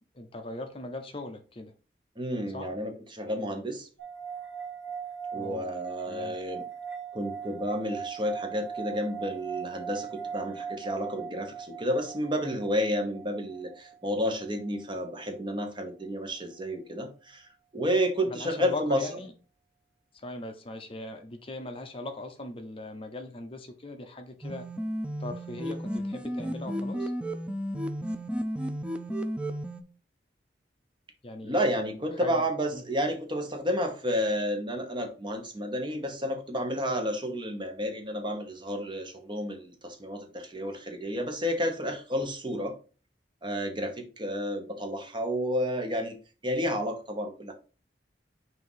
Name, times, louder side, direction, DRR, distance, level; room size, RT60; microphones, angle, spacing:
voice 1, 0.1-1.7 2.5-2.7 5.4-5.7 6.1-6.4 18.3-19.3 20.2-24.7 25.2-27.1 31.2-31.6 32.2-32.4 32.7-32.8, left 2 dB, 30° left, 5 dB, 0.8 m, -39 dB
voice 2, 2.2-3.9 5.3-6.6 7.1-19.1 31.4-42.7 43.4-46.2 46.4-47.5, equal, 25° right, 4 dB, 1.1 m, -31 dB
sound 1, 4.0-15.3, right 7 dB, 85° right, 2.0 m, -40 dB
sound 2, 24.4-29.8, equal, 5° right, 0.5 m, -33 dB
6.1 x 2.8 x 5.6 m, 0.36 s
head